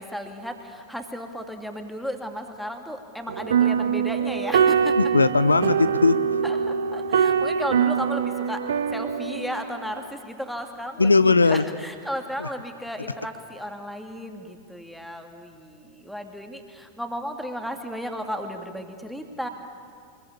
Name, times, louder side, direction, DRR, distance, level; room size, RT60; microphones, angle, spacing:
voice 1, 0.0-5.0 6.4-19.5, equal, ahead, 4 dB, 2.7 m, -34 dB
sound 1, 3.3-9.8, right 7 dB, 65° right, 1.1 m, -23 dB
voice 2, 5.0-6.4 11.0-11.6 12.4-12.5, left 3 dB, 80° left, 15 dB, 0.6 m, -19 dB
25.0 x 21.5 x 8.7 m, 2.2 s
figure-of-eight pair, 90°, 0 cm